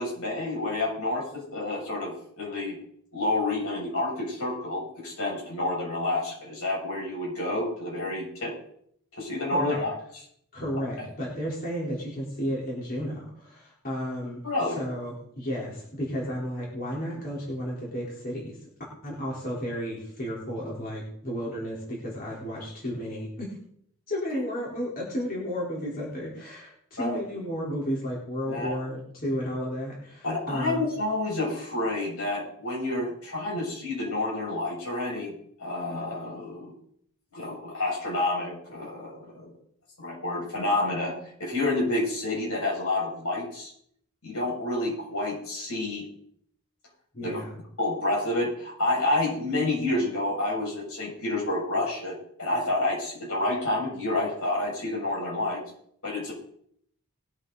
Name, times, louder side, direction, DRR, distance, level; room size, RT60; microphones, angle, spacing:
voice 1, 0.0-2.8 3.1-8.5 9.1-9.9 14.4-14.8 27.0-27.2 28.5-28.8 30.2-35.3 35.6-36.7 37.3-39.5 40.0-43.7 44.2-46.1 47.2-47.4 47.8-55.6 56.0-56.3, left 2 dB, 75° left, -3 dB, 6.9 m, -29 dB
voice 2, 9.5-9.8 10.5-14.4 14.8-18.6 19.0-23.5 24.1-30.9 47.1-47.5, equal, 40° left, -5 dB, 4.3 m, -33 dB
21.0 x 8.9 x 4.1 m, 0.68 s
head